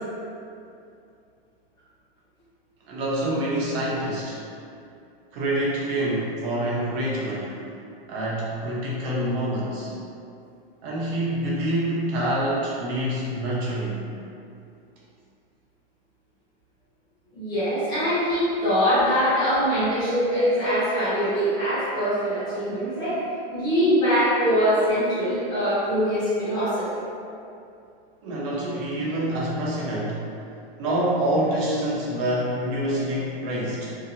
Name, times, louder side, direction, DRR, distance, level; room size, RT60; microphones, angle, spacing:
voice 1, 2.9-4.4 5.3-7.6 8.1-9.9 10.8-14.1 28.2-30.2 30.8-33.9, right 1 dB, 35° right, -6 dB, 0.6 m, -26 dB
voice 2, 17.3-23.2 23.5-26.9, equal, 15° left, -14 dB, 0.8 m, -23 dB
2.7 x 2.2 x 2.5 m, 2.5 s
supercardioid pair, 155°, 30 cm